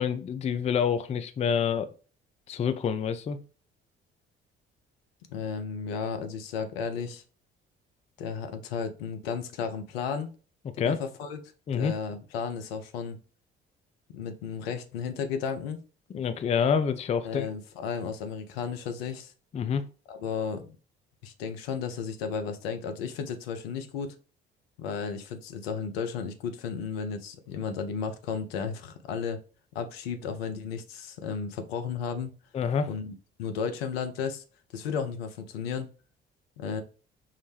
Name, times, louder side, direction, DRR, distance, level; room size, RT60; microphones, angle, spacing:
voice 1, 0.0-1.9 2.5-3.4 10.8-11.0 11.7-11.9 16.1-17.5 19.5-19.9 32.5-32.9, left 7 dB, 20° left, 0.4 m, -27 dB
voice 2, 5.3-7.2 8.2-10.3 10.8-11.4 11.7-13.2 14.1-15.8 17.2-19.3 20.1-20.7 21.2-24.1 24.8-29.4 29.7-32.3 32.9-33.1 33.4-34.4 34.7-35.9 36.6-36.8, left 6 dB, 75° left, 0.5 m, -33 dB
5.5 x 2.1 x 3.2 m
figure-of-eight pair, 45°, 30 cm